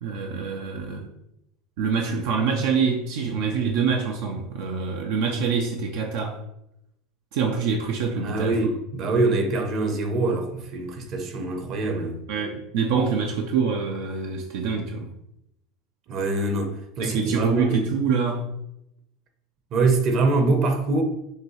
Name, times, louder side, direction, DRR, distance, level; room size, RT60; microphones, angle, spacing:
voice 1, 0.0-1.1 1.8-6.4 7.3-8.6 12.3-15.1 17.0-18.5, right 5 dB, 75° right, 0.6 m, -25 dB
voice 2, 8.1-12.2 16.1-17.9 19.7-21.0, right 3 dB, 50° right, 0.9 m, -24 dB
6.4 x 2.3 x 3.2 m
supercardioid pair, 115°, 0 cm